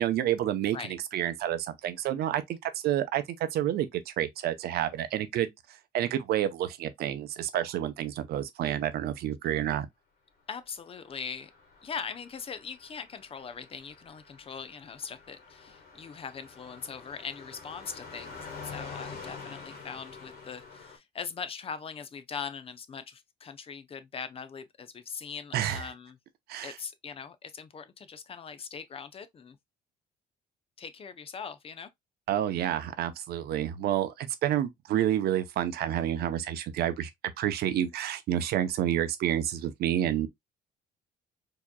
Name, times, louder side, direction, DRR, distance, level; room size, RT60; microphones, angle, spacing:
voice 1, 0.0-3.2 3.5-5.5 5.9-9.9 25.5-25.9 26.5-26.7 32.3-37.1 37.4-40.3, right 11 dB, 70° right, 0.7 m, -29 dB
voice 2, 10.5-11.5 11.8-26.2 26.6-29.6 30.8-31.9, left 6 dB, 35° left, 0.6 m, -41 dB
Car passing by, 11.0-21.0, left 4 dB, 70° left, 1.6 m, -47 dB
4.7 x 2.9 x 2.2 m
cardioid pair, 110°, 17 cm